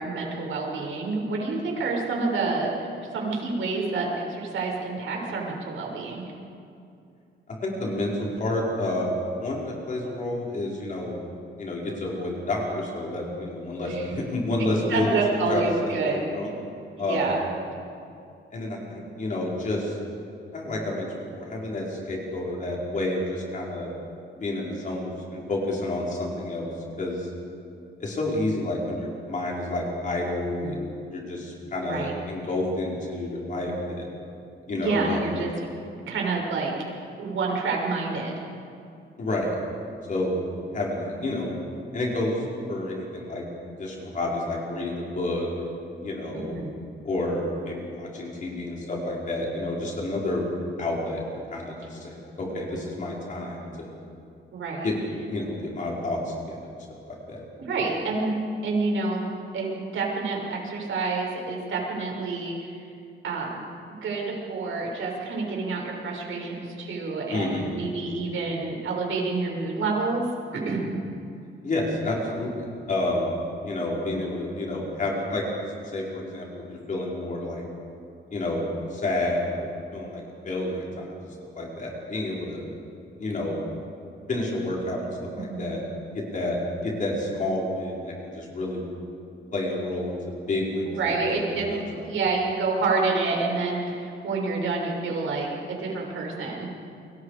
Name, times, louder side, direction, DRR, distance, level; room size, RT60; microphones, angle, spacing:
voice 1, 0.0-6.2 13.8-14.1 14.9-16.3 17.0-17.4 30.6-30.8 31.8-32.1 34.7-35.5 36.1-36.7 37.2-38.4 46.4-46.8 54.5-54.9 57.6-58.4 58.6-59.3 59.5-62.8 63.2-63.6 64.0-70.3 70.5-70.9 85.3-85.7 91.0-91.8 92.1-96.7, right 3 dB, 90° right, -1 dB, 6.1 m, -28 dB
voice 2, 7.5-9.1 9.4-11.2 11.6-15.1 15.5-16.5 17.0-17.3 18.5-20.0 20.5-23.9 24.3-26.7 27.0-27.3 28.0-30.8 31.1-34.1 34.7-35.2 39.2-39.5 40.1-40.4 40.7-41.5 41.9-43.4 43.8-45.5 46.0-46.5 47.0-50.5 50.8-51.2 51.5-53.9 54.8-54.9 55.3-56.6 57.1-57.4 67.3-67.6 71.6-73.3 73.6-75.4 75.9-77.6 78.3-81.1 81.5-82.6 83.2-83.6 84.3-85.1 85.4-85.8 86.3-88.8 89.5-91.8, left 2 dB, 40° left, -3 dB, 4.9 m, -29 dB
29.5 x 24.5 x 5.0 m, 2.5 s
wide cardioid pair, 170°, 20 cm